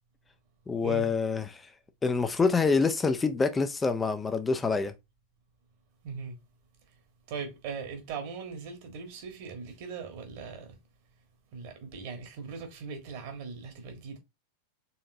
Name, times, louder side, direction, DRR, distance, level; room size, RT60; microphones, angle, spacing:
voice 1, 0.7-1.6 2.0-4.9, left 4 dB, 15° left, 0.4 m, -26 dB
voice 2, 6.0-6.3 7.3-10.7 11.5-14.2, right 5 dB, 50° right, 1.4 m, -39 dB
4.2 x 3.7 x 2.7 m
figure-of-eight pair, 90°, 0 cm